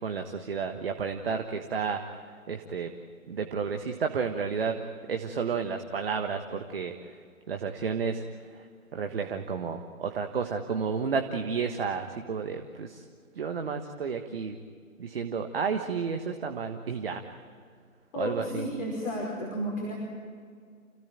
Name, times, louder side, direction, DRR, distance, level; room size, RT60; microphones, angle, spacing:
voice 1, 0.0-2.2 2.5-2.9 3.3-7.2 7.5-8.7 8.9-13.0 13.3-14.6 15.0-17.2 18.2-18.7, right 5 dB, 40° right, 5 dB, 1.5 m, -31 dB
voice 2, 18.1-19.9, equal, 30° left, -3 dB, 5.4 m, -32 dB
29.0 x 17.0 x 9.1 m, 2.1 s
figure-of-eight pair, 145°, 42 cm